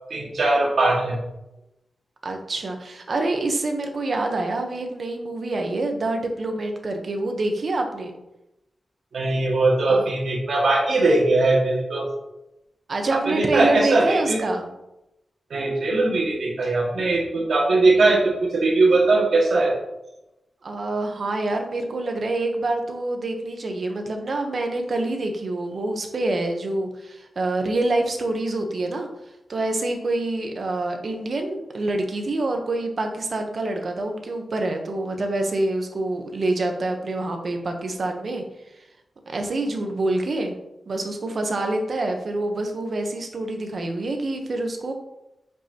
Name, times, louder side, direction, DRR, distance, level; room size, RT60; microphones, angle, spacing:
voice 1, 0.1-1.2 9.1-12.1 13.1-14.4 15.5-19.7, right 2 dB, 65° right, -2 dB, 2.0 m, -20 dB
voice 2, 2.2-8.1 9.9-10.0 12.9-14.7 20.6-29.1 29.5-38.4 39.3-40.6 40.9-44.9, right 2 dB, 45° right, 4 dB, 1.0 m, -26 dB
8.1 x 5.6 x 2.9 m, 0.90 s
wide cardioid pair, 180°, 0 cm